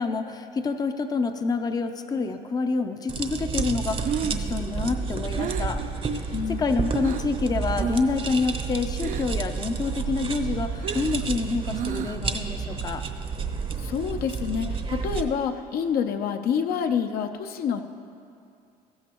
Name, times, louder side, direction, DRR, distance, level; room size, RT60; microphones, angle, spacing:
voice 1, 0.0-5.8 6.5-13.0, left 4 dB, 25° left, 7 dB, 0.5 m, -27 dB
sound 1, 3.1-15.2, right 4 dB, 30° right, 0.8 m, -30 dB
Breathing, 4.0-7.4 7.7-8.2 8.5-9.5 9.8-12.4, right 9 dB, 50° right, 0.4 m, -34 dB
voice 2, 6.3-6.7 13.8-17.8, left 7 dB, 65° left, 6 dB, 0.7 m, -27 dB
14.5 x 14.5 x 3.0 m, 2.5 s
cardioid pair, 110°, 17 cm